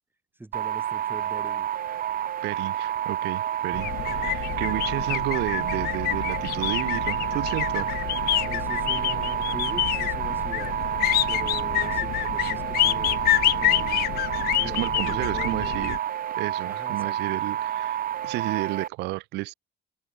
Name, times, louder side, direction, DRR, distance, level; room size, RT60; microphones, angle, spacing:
voice 1, 0.3-1.9 4.0-5.0 8.4-10.8 11.3-16.0 16.6-17.4, right 2 dB, 10° right, 6.9 m, -43 dB
sound 1, 0.5-18.9, right 11 dB, 55° right, 2.6 m, -29 dB
voice 2, 2.4-3.9 4.1-7.9 14.6-16.0 16.4-19.5, right 20 dB, 90° right, 1.7 m, -32 dB
sound 2, 3.7-16.0, left 16 dB, 65° left, 0.5 m, -27 dB
cardioid pair, 110°, 17 cm